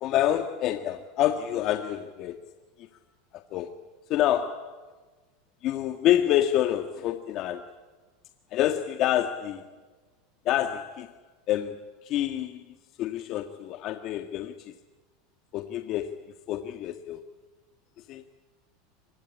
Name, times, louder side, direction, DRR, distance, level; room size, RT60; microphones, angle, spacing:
voice 1, 0.0-2.4 2.8-2.9 3.3-3.7 4.1-4.8 5.6-7.7 8.5-9.7 10.5-11.2 11.5-14.7 15.5-16.2 16.5-17.2 18.1-18.2, left 12 dB, 50° left, 7 dB, 1.7 m, -27 dB
25.0 x 22.0 x 8.8 m, 1.3 s
hypercardioid pair, 105°, 0 cm